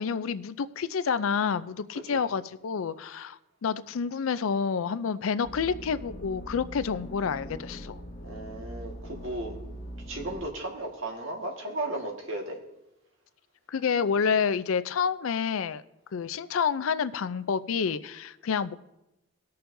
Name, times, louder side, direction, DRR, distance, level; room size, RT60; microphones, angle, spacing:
voice 1, 0.0-8.0 13.7-15.8 16.1-18.7, left 6 dB, 75° left, 14 dB, 0.4 m, -29 dB
voice 2, 1.9-2.3 8.2-9.6 10.1-12.6, right 1 dB, 70° right, 1 dB, 1.7 m, -35 dB
sound 1, 5.4-10.4, equal, 30° left, 1.5 m, -41 dB
19.5 x 6.7 x 2.6 m, 0.90 s
head